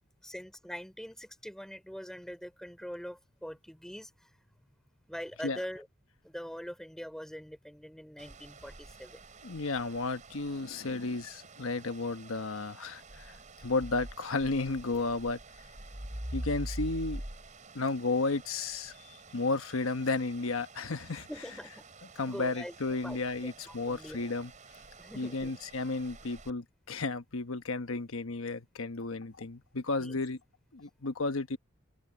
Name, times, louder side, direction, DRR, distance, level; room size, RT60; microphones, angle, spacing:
voice 1, 0.2-4.3 5.1-5.9 6.2-9.2 21.3-21.8 22.3-22.7 23.0-24.3 25.0-25.5 30.0-30.2, equal, 5° left, 4.1 m, -43 dB
sound 1, 8.2-26.5, right 1 dB, 40° right, 4.7 m, -46 dB
voice 2, 9.4-13.3 13.6-15.4 16.3-17.2 17.7-21.3 22.2-24.5 25.1-30.4 30.7-31.6, left 3 dB, 90° left, 1.1 m, -33 dB
open air
head